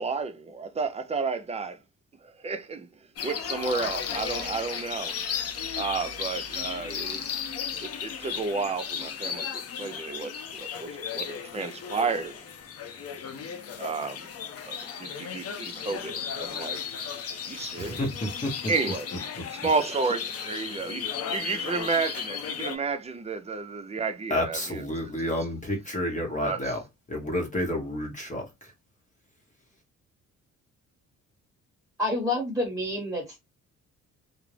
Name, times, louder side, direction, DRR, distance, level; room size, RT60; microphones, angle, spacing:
voice 1, 0.0-1.8 2.2-2.9 3.2-5.1 5.7-7.2 7.8-12.4 13.8-14.3 14.6-17.1 17.4-18.0 18.7-19.1 19.5-24.8 26.4-26.8, right 4 dB, 20° right, 0.5 m, -31 dB
sound 1, 3.2-22.8, left 7 dB, 50° left, 0.6 m, -35 dB
voice 2, 17.8-18.5 24.3-26.8 27.1-28.7, left 1 dB, 25° left, 0.9 m, -30 dB
voice 3, 32.0-33.4, left 1 dB, 5° right, 1.2 m, -28 dB
2.4 x 2.0 x 3.1 m
cardioid pair, 90°, 30 cm